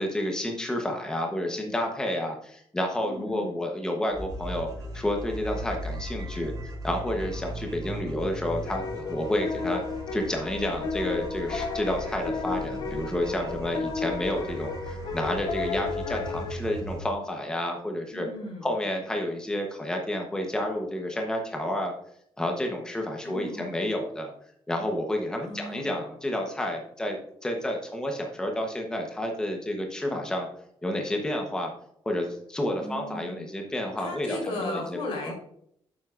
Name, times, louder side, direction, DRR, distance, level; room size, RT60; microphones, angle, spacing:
voice 1, 0.0-4.7 4.9-9.8 10.1-18.3 18.6-21.9 22.4-24.3 24.7-30.5 30.8-31.7 32.0-35.0 35.3-35.4, left 1 dB, 10° left, 2 dB, 0.9 m, -30 dB
voice 2, 3.0-3.5 18.1-18.7 23.2-23.8 25.4-26.0 32.8-33.5 34.0-35.3, left 1 dB, 80° left, 0 dB, 3.7 m, -36 dB
sound 1, 4.1-17.0, right 1 dB, 40° right, 2.2 m, -38 dB
sound 2, 8.7-16.5, left 5 dB, 45° left, 0.9 m, -33 dB
10.0 x 7.6 x 2.5 m, 0.68 s
wide cardioid pair, 180°, 9 cm